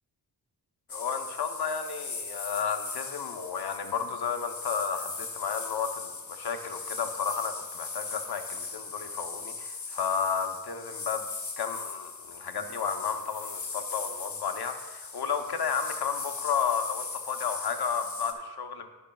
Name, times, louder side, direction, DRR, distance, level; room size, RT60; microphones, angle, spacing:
voice 1, 0.9-11.2 11.6-18.9, left 6 dB, 85° left, 6 dB, 0.8 m, -32 dB
sound 1, 0.9-18.3, left 4 dB, 50° left, 1.1 m, -39 dB
19.0 x 6.4 x 2.3 m, 1.2 s
wide cardioid pair, 65°, 38 cm